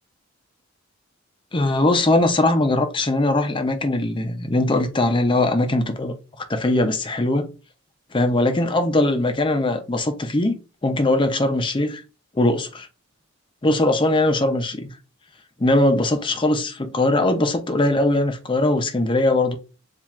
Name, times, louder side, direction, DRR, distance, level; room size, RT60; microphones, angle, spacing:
voice 1, 1.5-6.1 6.5-7.5 8.1-12.0 12.4-12.9 13.6-14.9 15.6-19.6, left 2 dB, 20° left, 0.5 m, -20 dB
7.2 x 2.5 x 2.4 m
head